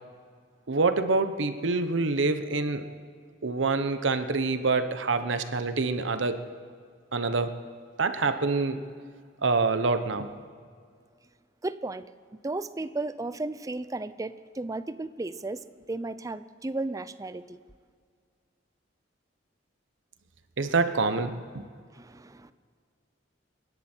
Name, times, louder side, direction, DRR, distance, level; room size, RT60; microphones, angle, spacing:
voice 1, 0.7-2.9 3.4-6.4 7.1-7.5 8.0-8.8 9.4-10.3 20.6-21.4, right 3 dB, 75° right, 0.9 m, -26 dB
voice 2, 11.6-12.1 12.4-17.6 21.9-22.5, right 2 dB, 20° right, 0.5 m, -34 dB
28.5 x 11.0 x 4.5 m
head